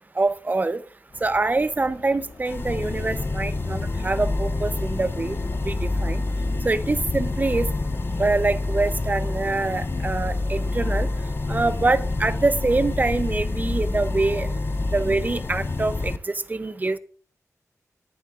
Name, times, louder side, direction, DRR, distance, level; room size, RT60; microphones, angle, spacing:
voice 1, 0.2-0.8 1.2-5.4 5.6-6.2 6.6-7.7 8.2-11.1 11.5-14.5 14.9-17.0, right 3 dB, 30° right, 13 dB, 0.6 m, -25 dB
sound 1, 1.1-6.5, left 3 dB, 85° left, 2.9 m, -45 dB
sound 2, 1.8-14.1, left 2 dB, 65° left, 5.0 m, -57 dB
sound 3, 2.5-16.2, left 2 dB, 40° left, 0.5 m, -27 dB
18.5 x 10.5 x 2.4 m, 0.43 s
wide cardioid pair, 95°, 6 cm